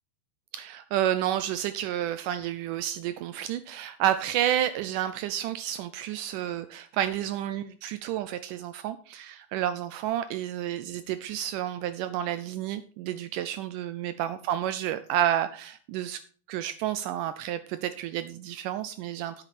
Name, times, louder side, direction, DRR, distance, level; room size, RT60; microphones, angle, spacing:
voice 1, 0.5-16.2 16.5-19.4, right 11 dB, 90° right, 12 dB, 1.8 m, -30 dB
10.5 x 9.1 x 4.2 m, 0.42 s
omnidirectional pair, 4.4 m